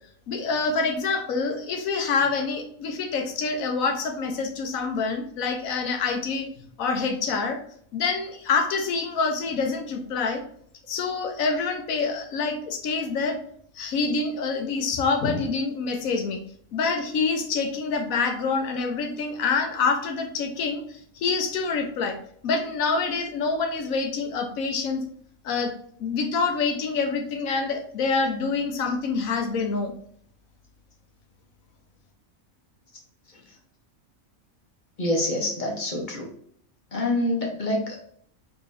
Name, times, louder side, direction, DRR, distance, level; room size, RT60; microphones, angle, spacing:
voice 1, 0.3-6.5 6.8-7.6 7.9-10.4 10.9-13.4 13.7-16.4 16.7-22.2 22.4-25.0 25.4-25.7 26.0-29.9, left 4 dB, 75° left, 5 dB, 1.1 m, -26 dB
voice 2, 35.0-36.3 36.9-38.1, left 1 dB, 40° left, 0 dB, 0.8 m, -26 dB
4.7 x 3.0 x 2.6 m, 0.63 s
omnidirectional pair, 1.5 m